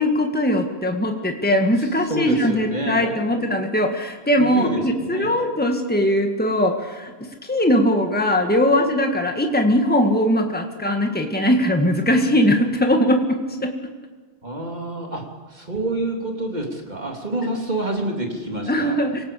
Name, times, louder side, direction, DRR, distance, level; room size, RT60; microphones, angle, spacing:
voice 1, 0.0-7.1 7.4-13.7 18.7-19.2, equal, 10° left, 4 dB, 2.0 m, -20 dB
voice 2, 1.8-3.4 4.4-5.4 14.4-15.2 15.5-18.9, right 1 dB, 40° right, 1 dB, 3.3 m, -28 dB
27.0 x 18.5 x 8.5 m, 1.4 s
omnidirectional pair, 1.1 m